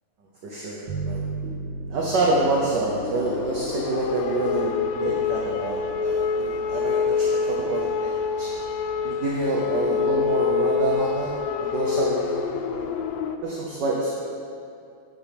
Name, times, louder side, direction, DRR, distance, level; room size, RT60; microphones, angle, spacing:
voice 1, 0.4-1.2 1.9-4.7 5.0-8.5 9.0-12.9 13.4-14.2, right 2 dB, 60° right, -3 dB, 1.5 m, -27 dB
sound 1, 0.9-10.2, right 3 dB, 75° right, 2.1 m, -38 dB
sound 2, 2.4-13.4, left 6 dB, 75° left, 1.2 m, -26 dB
10.0 x 9.4 x 3.5 m, 2.4 s
omnidirectional pair, 2.4 m